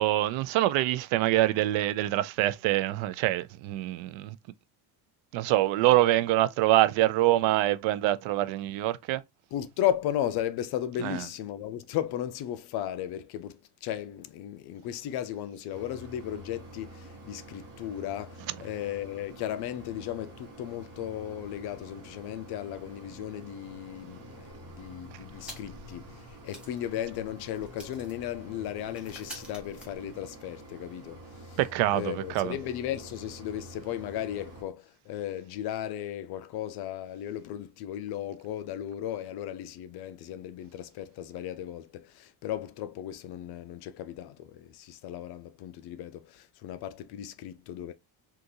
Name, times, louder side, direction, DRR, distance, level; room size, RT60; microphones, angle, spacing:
voice 1, 0.0-4.4 5.3-9.2 11.0-11.2 31.6-32.6, right 15 dB, 85° right, 0.5 m, -25 dB
voice 2, 9.5-31.6 31.9-47.9, left 11 dB, 60° left, 0.5 m, -35 dB
Mechanisms, 15.7-34.6, right 1 dB, 35° right, 1.0 m, -48 dB
sound 1, 25.4-25.9 26.2-26.3 26.5-30.6, equal, ahead, 0.8 m, -49 dB
3.7 x 2.5 x 2.6 m
cardioid pair, 175°, 45 cm